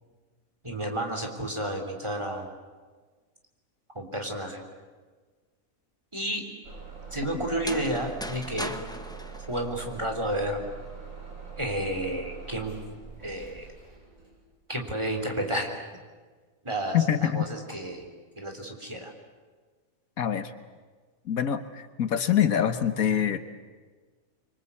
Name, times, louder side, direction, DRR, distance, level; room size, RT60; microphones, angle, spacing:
voice 1, 0.6-2.5 4.0-4.6 6.1-6.4 7.1-8.7 9.5-10.6 11.6-12.8 13.2-13.6 14.7-15.8 16.6-18.1 18.4-19.1, right 1 dB, 20° right, 2 dB, 3.5 m, -31 dB
Bus / Engine starting, 6.6-14.4, right 5 dB, 65° right, 7.3 m, -43 dB
sound 1, 7.5-10.4, equal, 5° left, 1.0 m, -39 dB
voice 2, 16.9-17.5 20.2-20.5 21.2-23.4, left 9 dB, 75° left, 10 dB, 1.6 m, -25 dB
26.0 x 24.5 x 8.4 m, 1.4 s
omnidirectional pair, 1.5 m